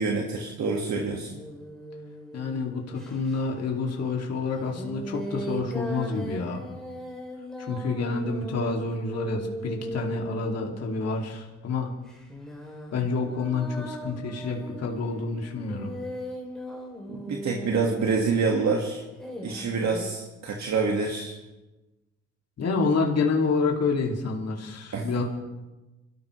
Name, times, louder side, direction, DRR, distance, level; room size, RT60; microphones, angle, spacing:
voice 1, 0.0-1.4 17.1-19.0 19.4-21.4 24.9-25.1, right 4 dB, 65° right, 0 dB, 1.9 m, -27 dB
sound 1, 1.3-3.4 4.6-11.3 12.1-18.5 19.2-20.1, equal, ahead, 3.3 m, -38 dB
voice 2, 2.3-6.7 7.7-11.9 12.9-15.9 22.6-25.2, left 4 dB, 55° left, 0 dB, 2.6 m, -28 dB
26.0 x 13.5 x 3.3 m, 1.1 s
cardioid pair, 90°, 30 cm